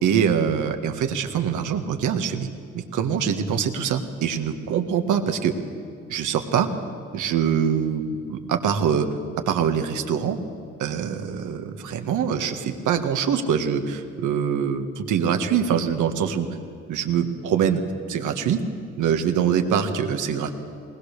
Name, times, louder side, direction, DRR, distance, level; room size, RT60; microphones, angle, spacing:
voice 1, 0.0-2.5 2.7-5.5 6.1-6.7 7.1-9.1 9.5-10.4 10.8-16.5 16.9-17.8 18.1-18.6 19.0-20.5, right 8 dB, 80° right, 6 dB, 1.6 m, -24 dB
20.5 x 20.0 x 6.7 m, 2.4 s
cardioid pair, 90°, 30 cm